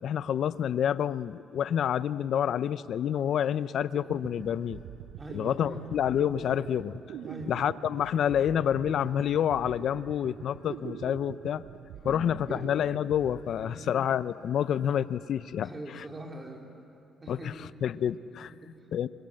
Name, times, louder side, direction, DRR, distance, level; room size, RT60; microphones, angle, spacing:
voice 1, 0.0-4.8 5.3-7.0 7.5-11.6 12.0-15.7 17.3-17.4 17.8-18.5 18.9-19.1, left 9 dB, 70° left, 16 dB, 0.6 m, -28 dB
sound 1, 3.1-5.0 5.4-6.0 6.3-11.5 11.8-16.9, left 3 dB, 90° left, 6.2 m, -60 dB
sound 2, 3.8-14.3, right 11 dB, 80° right, 0.5 m, -45 dB
voice 2, 5.2-5.8 7.2-7.6 12.1-12.7 13.6-14.0 15.6-16.7 17.2-17.7 18.4-18.9, right 1 dB, 25° right, 1 dB, 3.9 m, -42 dB
27.5 x 22.5 x 7.7 m, 2.7 s
cardioid pair, 90°, 0 cm